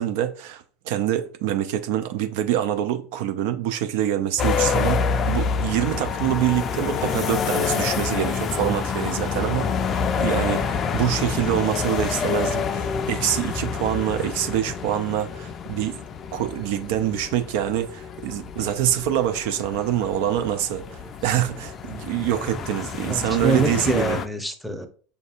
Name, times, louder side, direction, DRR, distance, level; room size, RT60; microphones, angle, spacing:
voice 1, 0.0-16.0 16.3-24.2, right 11 dB, 60° right, 0.4 m, -25 dB
sound 1, 4.4-24.3, left 6 dB, 35° left, 0.4 m, -27 dB
voice 2, 22.3-22.6 23.1-24.9, right 3 dB, ahead, 0.7 m, -26 dB
6.7 x 2.6 x 2.4 m
hypercardioid pair, 80°, 0 cm